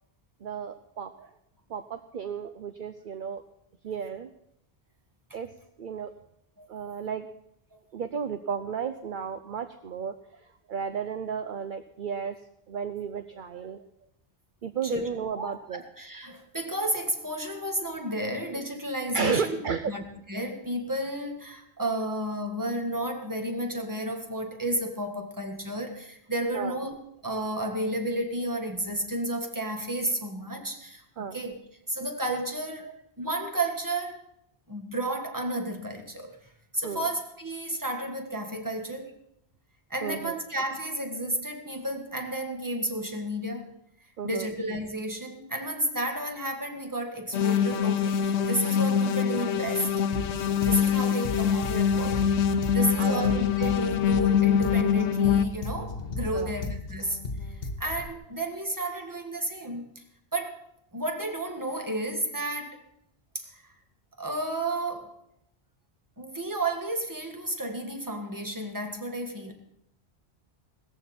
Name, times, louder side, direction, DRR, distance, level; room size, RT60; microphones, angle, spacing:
voice 1, 0.4-1.3 1.7-3.4 3.8-4.3 5.3-5.5 5.8-6.1 6.7-7.3 7.9-10.1 10.7-12.3 12.7-13.8 14.6-15.8 19.1-19.9 26.5-26.8 31.2-31.4 32.8-33.0 36.8-37.1 40.0-40.3 44.2-44.5 52.6-53.4 56.3-56.5, right 6 dB, 55° right, 9 dB, 0.8 m, -33 dB
voice 2, 15.3-19.6 19.9-27.0 27.2-31.6 31.9-32.9 33.2-34.2 34.7-39.1 39.9-43.7 44.2-49.9 50.6-52.3 52.7-57.2 57.8-60.0 60.3-60.6 60.9-62.8 63.3-63.7 64.2-65.1 66.2-69.5, right 1 dB, 15° right, 3 dB, 1.7 m, -32 dB
sound 1, 47.3-55.4, left 8 dB, 90° left, 1.0 m, -24 dB
sound 2, 50.1-58.1, left 3 dB, 60° left, 1.5 m, -36 dB
17.5 x 14.0 x 4.3 m, 0.77 s
omnidirectional pair, 1.1 m